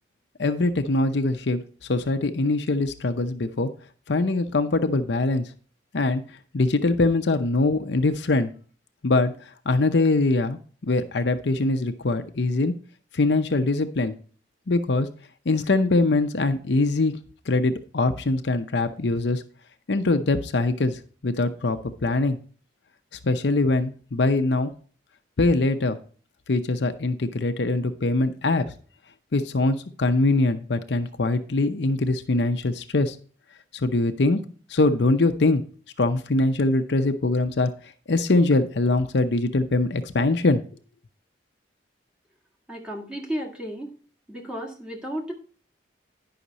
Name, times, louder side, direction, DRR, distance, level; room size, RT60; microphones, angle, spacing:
voice 1, 0.4-1.6 1.9-3.7 4.1-5.5 5.9-6.2 6.5-8.5 9.0-12.7 13.1-14.1 14.7-15.1 15.5-17.1 17.5-19.4 19.9-22.4 23.2-24.7 25.4-26.0 26.5-28.7 29.3-33.2 33.7-34.4 34.7-35.6 36.0-37.7 38.1-40.6, left 2 dB, 70° left, 8 dB, 0.7 m, -23 dB
voice 2, 42.7-43.9 44.3-45.3, equal, 5° right, -1 dB, 1.8 m, -33 dB
10.0 x 5.8 x 4.1 m, 0.42 s
head